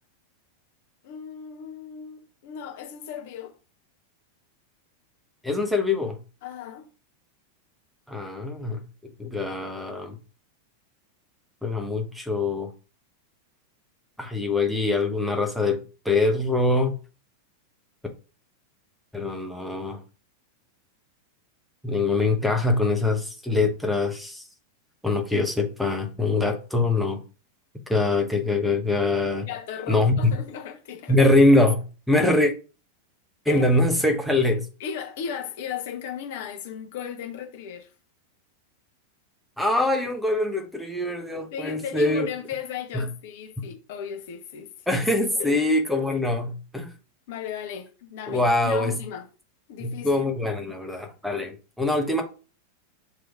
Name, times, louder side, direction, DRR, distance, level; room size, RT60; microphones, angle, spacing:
voice 1, 1.0-3.6 6.4-6.9 29.5-31.2 33.5-33.6 34.8-37.9 41.3-44.7 45.4-45.6 47.3-49.3 49.7-50.2, left 8 dB, 50° left, 0.9 m, -36 dB
voice 2, 5.4-6.2 8.1-8.8 9.2-10.2 11.6-12.7 14.2-17.0 19.1-20.0 21.8-24.4 25.0-27.2 27.9-29.5 29.9-30.3 31.1-32.5 33.5-34.7 39.6-42.3 42.9-43.1 43.6-43.7 44.9-46.9 48.3-49.0 49.8-52.2, left 2 dB, ahead, 0.8 m, -23 dB
6.8 x 3.0 x 2.4 m
figure-of-eight pair, 90°, 0 cm